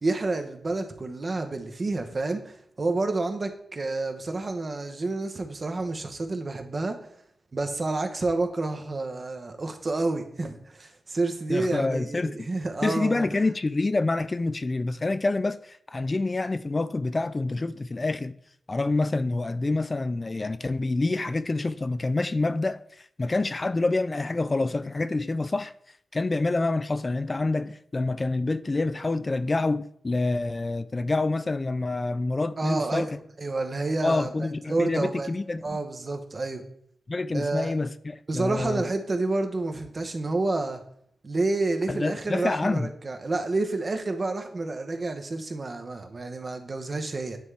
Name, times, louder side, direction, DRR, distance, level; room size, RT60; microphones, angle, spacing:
voice 1, 0.0-7.0 7.5-13.3 32.6-34.3 34.7-35.3 35.6-36.6 37.3-37.7 38.3-40.8 41.2-47.4, right 2 dB, 45° right, 0.9 m, -29 dB
voice 2, 11.5-12.5 12.8-18.3 18.7-22.8 23.2-25.7 26.1-33.1 34.0-35.8 37.1-38.8 41.9-42.9, left 2 dB, 35° left, 0.3 m, -27 dB
9.3 x 3.2 x 3.4 m
cardioid pair, 50°, 0 cm